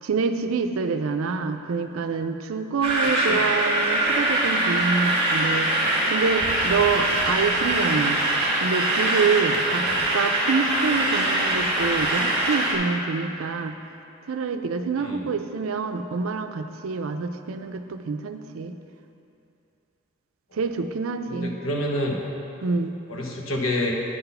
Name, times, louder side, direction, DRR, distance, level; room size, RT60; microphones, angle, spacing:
voice 1, 0.0-5.7 6.1-8.2 8.6-9.9 10.1-13.8 14.3-18.7 20.5-21.5 22.6-23.0, right 4 dB, 75° right, 8 dB, 0.4 m, -26 dB
sound 1, 2.8-12.8, right 1 dB, 30° right, 1.6 m, -23 dB
voice 2, 3.2-3.5 9.7-10.1 15.0-15.2 20.5-20.6 21.3-22.2 23.1-23.9, left 1 dB, 70° left, 0 dB, 1.0 m, -29 dB
9.3 x 4.0 x 5.6 m, 2.7 s
head